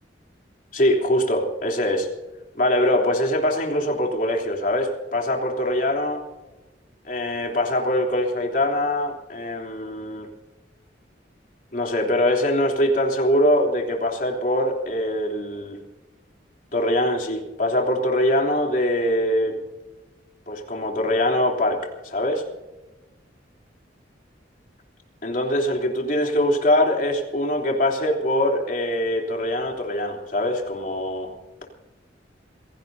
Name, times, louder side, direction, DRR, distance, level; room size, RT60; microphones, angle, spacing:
voice 1, 0.7-2.1 2.5-6.2 7.1-10.3 11.7-15.8 16.7-19.6 20.5-22.4 25.2-31.3, left 1 dB, 50° left, 1 dB, 3.4 m, -23 dB
27.0 x 17.5 x 2.8 m, 1.1 s
head